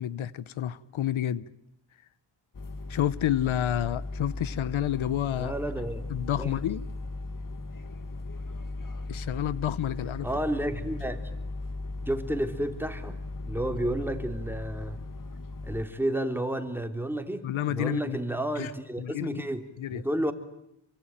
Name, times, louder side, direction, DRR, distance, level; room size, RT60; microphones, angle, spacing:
voice 1, 0.0-1.4 2.9-5.5 6.1-6.8 9.1-10.3 17.4-18.2 18.6-18.7 19.0-19.4 19.8-20.0, left 11 dB, 90° left, 1.0 m, -29 dB
sound 1, 2.5-15.8, left 2 dB, 45° left, 2.1 m, -37 dB
voice 2, 5.3-6.0 6.4-6.6 10.2-11.3 12.1-15.0 15.6-20.3, right 1 dB, 5° right, 3.0 m, -31 dB
27.0 x 24.0 x 9.1 m
cardioid pair, 80°, 46 cm